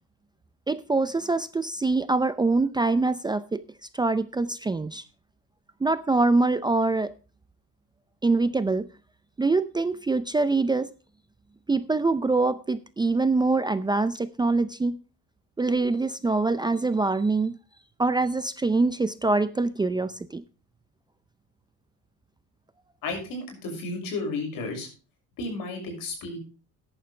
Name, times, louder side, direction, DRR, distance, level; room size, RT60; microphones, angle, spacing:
voice 1, 0.7-3.6 3.9-5.0 5.8-7.1 8.2-8.9 9.4-10.9 11.7-15.0 15.6-17.6 18.0-20.4, right 3 dB, 10° right, 12 dB, 0.5 m, -24 dB
voice 2, 23.0-24.9 25.4-26.4, left 3 dB, 70° left, 3 dB, 6.5 m, -32 dB
14.0 x 10.5 x 3.3 m, 0.34 s
cardioid pair, 130°, 35 cm